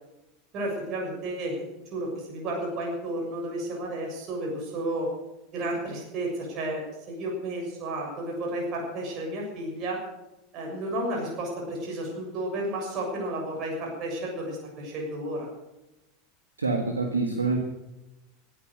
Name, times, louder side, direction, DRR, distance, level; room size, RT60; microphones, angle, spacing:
voice 1, 0.5-5.1 5.5-10.0 10.5-15.5, right 1 dB, 40° right, -1 dB, 7.0 m, -32 dB
voice 2, 16.6-17.6, right 3 dB, 80° right, 3 dB, 1.7 m, -26 dB
17.5 x 12.0 x 6.6 m, 0.97 s
figure-of-eight pair, 80°, 0 cm